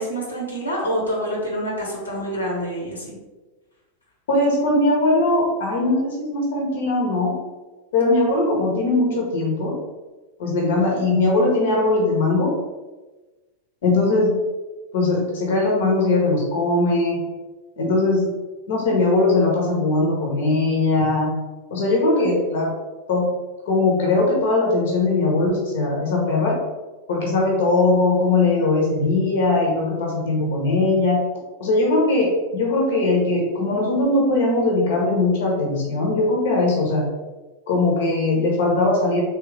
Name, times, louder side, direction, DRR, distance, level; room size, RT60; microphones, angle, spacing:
voice 1, 0.0-3.2, equal, 80° left, -2 dB, 1.0 m, -27 dB
voice 2, 4.3-7.3 7.9-9.8 10.4-12.5 13.8-14.3 14.9-17.2 17.8-18.3 18.7-21.4 21.7-22.7 23.1-23.3 23.7-26.6 27.1-31.2 31.6-37.1 37.7-39.2, left 2 dB, 55° left, -2 dB, 0.9 m, -20 dB
3.6 x 3.0 x 3.2 m, 1.2 s
figure-of-eight pair, 90°, 0 cm